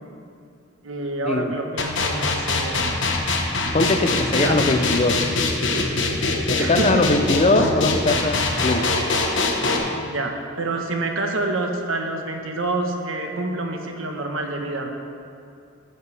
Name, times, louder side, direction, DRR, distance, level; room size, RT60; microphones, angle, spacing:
voice 1, 0.8-3.0 4.3-4.5 6.6-7.1 10.1-14.9, right 2 dB, 75° right, 3 dB, 1.2 m, -27 dB
sound 1, 1.8-9.8, left 3 dB, 60° left, 1.2 m, -22 dB
voice 2, 3.7-5.1 6.5-8.8, left 2 dB, 30° left, 6 dB, 0.6 m, -21 dB
14.0 x 10.0 x 3.4 m, 2.5 s
head